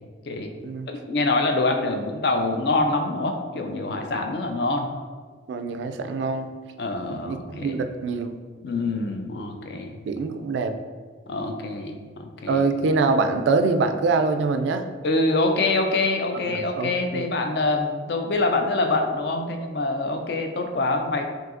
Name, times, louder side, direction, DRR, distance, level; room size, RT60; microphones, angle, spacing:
voice 1, 0.9-4.9 6.8-7.8 8.6-10.0 11.3-12.6 15.0-21.2, left 2 dB, 60° left, 4 dB, 0.5 m, -25 dB
voice 2, 5.5-6.5 7.1-8.4 10.1-10.8 12.5-14.8 16.5-17.3, right 3 dB, 70° right, 8 dB, 0.3 m, -24 dB
5.8 x 2.7 x 2.5 m, 1.5 s
head